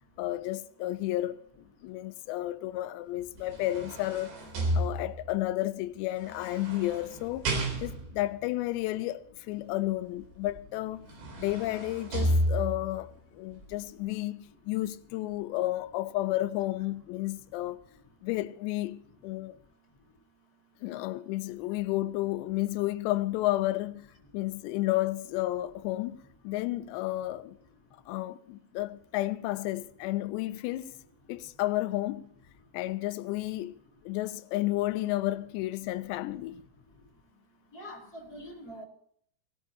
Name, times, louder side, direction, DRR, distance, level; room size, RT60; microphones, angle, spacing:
voice 1, 0.2-4.3 4.7-7.5 7.8-11.0 11.4-17.8 18.2-19.6 20.8-24.1 24.3-27.6 28.1-30.9 31.3-32.3 32.7-33.8 34.0-36.7, left 16 dB, 85° left, 2.8 m, -32 dB
sound 1, 3.2-5.4 6.2-8.2 10.5-10.6 11.0-13.0 13.5-13.7, right 1 dB, 85° right, 6.0 m, -32 dB
voice 2, 37.7-38.8, equal, 25° left, 3.1 m, -44 dB
19.5 x 17.5 x 2.7 m
omnidirectional pair, 5.0 m